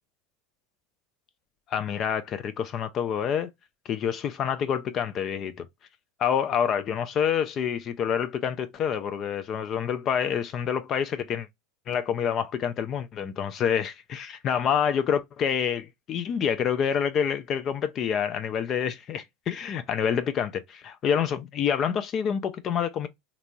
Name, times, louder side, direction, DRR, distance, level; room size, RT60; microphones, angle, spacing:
voice 1, 1.7-3.5 3.9-5.7 6.2-11.5 11.9-23.1, left 8 dB, 45° left, 0.4 m, -27 dB
2.9 x 2.6 x 2.2 m
hypercardioid pair, 95°, 0 cm